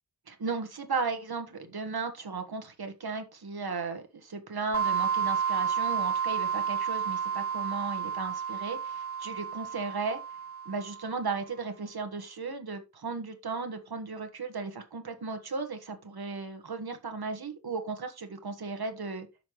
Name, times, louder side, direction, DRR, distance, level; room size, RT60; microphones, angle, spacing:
voice 1, 0.3-10.2 10.6-19.2, right 4 dB, 65° right, 1.5 m, -35 dB
sound 1, 4.7-11.2, right 7 dB, 35° right, 0.7 m, -31 dB
10.5 x 5.8 x 3.1 m
cardioid pair, 50°, 41 cm